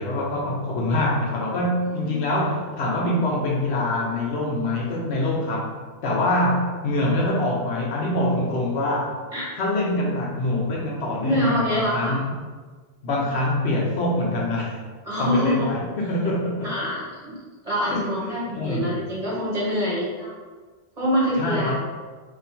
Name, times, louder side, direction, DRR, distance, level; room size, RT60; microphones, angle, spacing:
voice 1, 0.0-5.7 6.0-9.1 9.6-12.2 13.0-14.8 15.2-16.7 17.9-18.9 21.4-21.8, left 1 dB, 90° left, -2 dB, 1.0 m, -24 dB
voice 2, 11.2-12.2 15.0-15.7 16.6-17.3 17.6-20.4 21.0-21.7, equal, 35° right, -7 dB, 1.4 m, -25 dB
2.8 x 2.6 x 4.3 m, 1.4 s
omnidirectional pair, 1.1 m